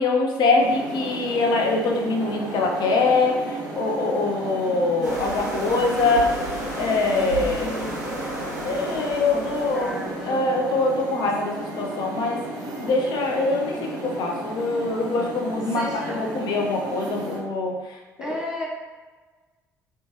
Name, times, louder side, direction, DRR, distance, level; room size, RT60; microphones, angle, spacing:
voice 1, 0.0-6.3 6.8-7.7 8.6-12.4 12.8-18.4, left 3 dB, 50° left, 1 dB, 0.5 m, -23 dB
sound 1, 0.6-17.4, right 1 dB, 45° right, 0.6 m, -34 dB
sound 2, 5.0-10.3, equal, 90° right, 0.5 m, -33 dB
voice 2, 7.2-8.0 9.3-10.5 15.7-16.4 18.2-18.7, left 1 dB, 10° right, -3 dB, 0.8 m, -34 dB
2.9 x 2.2 x 2.8 m, 1.3 s
figure-of-eight pair, 45°, 9 cm